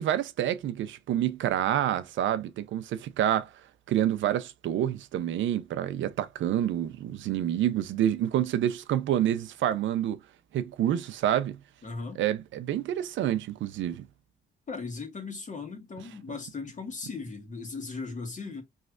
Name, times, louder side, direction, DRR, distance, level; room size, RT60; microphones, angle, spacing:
voice 1, 0.0-3.5 3.9-10.2 10.5-11.6 12.1-14.0, right 11 dB, 75° right, 0.6 m, -28 dB
voice 2, 11.8-12.2 14.7-18.6, left 4 dB, 40° left, 1.6 m, -37 dB
4.7 x 3.2 x 2.4 m
cardioid pair, 90°, 20 cm